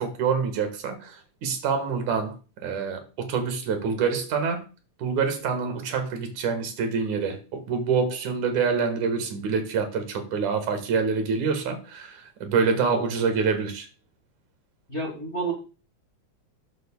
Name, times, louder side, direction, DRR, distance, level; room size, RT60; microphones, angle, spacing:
voice 1, 0.0-2.3 2.6-4.6 5.0-13.9, right 5 dB, 80° right, 3.1 m, -26 dB
voice 2, 14.9-15.5, right 3 dB, 25° left, 1.6 m, -30 dB
13.5 x 7.9 x 2.3 m
omnidirectional pair, 3.4 m